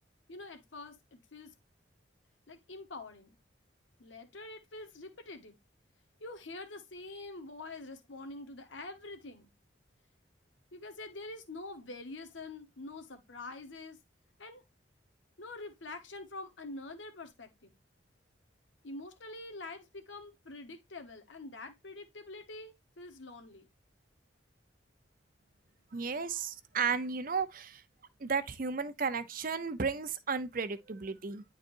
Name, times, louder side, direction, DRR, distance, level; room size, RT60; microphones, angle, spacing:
voice 1, 0.3-1.5 2.5-3.3 4.0-5.5 6.2-9.5 10.7-14.0 14.4-14.6 15.4-17.7 18.8-23.7, left 2 dB, 90° left, 1.2 m, -46 dB
voice 2, 25.9-27.8 28.2-31.4, right 5 dB, 50° right, 0.7 m, -34 dB
10.0 x 4.0 x 2.6 m
head